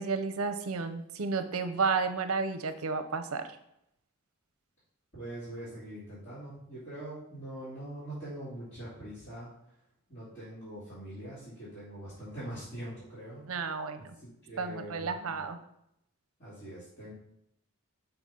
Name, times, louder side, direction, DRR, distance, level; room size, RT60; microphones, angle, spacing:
voice 1, 0.0-3.4 13.5-14.1 14.6-15.6, right 4 dB, 80° right, 9 dB, 0.6 m, -32 dB
voice 2, 5.1-9.7 10.1-13.7 14.1-15.4 16.4-17.1, right 1 dB, 45° left, -13 dB, 2.8 m, -43 dB
5.9 x 5.4 x 3.7 m, 0.78 s
head